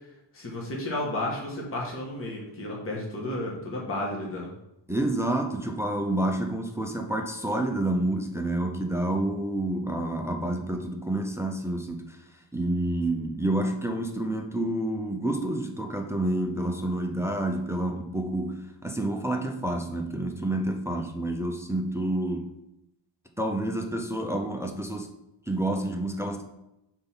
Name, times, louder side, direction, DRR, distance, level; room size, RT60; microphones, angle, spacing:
voice 1, 0.3-4.5, left 1 dB, 30° left, -3 dB, 1.4 m, -32 dB
voice 2, 4.9-12.2 12.5-22.5 23.4-25.1 25.5-26.4, right 1 dB, 5° right, 3 dB, 0.4 m, -29 dB
5.3 x 4.5 x 5.6 m, 0.88 s
wide cardioid pair, 175°, 46 cm